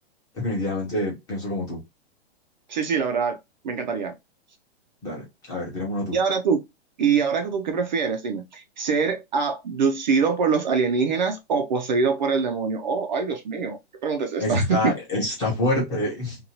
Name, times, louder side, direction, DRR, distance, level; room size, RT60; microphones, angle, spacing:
voice 1, 0.3-1.8 5.0-5.2 5.5-6.2 14.4-16.4, left 1 dB, 10° left, 0.7 m, -26 dB
voice 2, 2.7-3.4 3.6-4.1 6.1-6.6 7.0-14.9, right 5 dB, 45° right, 0.4 m, -24 dB
2.7 x 2.3 x 2.7 m
hypercardioid pair, 165°, 32 cm